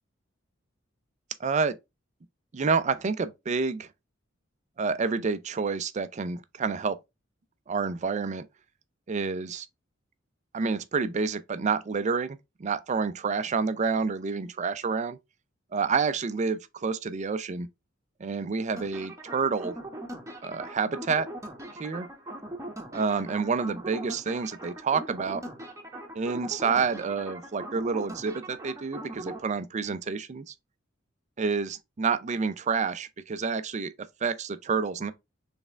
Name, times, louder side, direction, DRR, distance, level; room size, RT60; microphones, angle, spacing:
voice 1, 1.4-1.7 2.5-3.9 4.8-7.0 7.7-8.4 9.1-9.7 10.5-15.2 15.7-17.7 18.2-19.7 20.4-21.3 21.8-22.1 22.9-25.4 26.1-30.5 31.4-33.9 34.2-35.1, right 5 dB, 35° right, 0.4 m, -28 dB
sound 1, 18.8-29.4, right 1 dB, 15° right, 1.0 m, -40 dB
4.3 x 3.4 x 3.4 m
head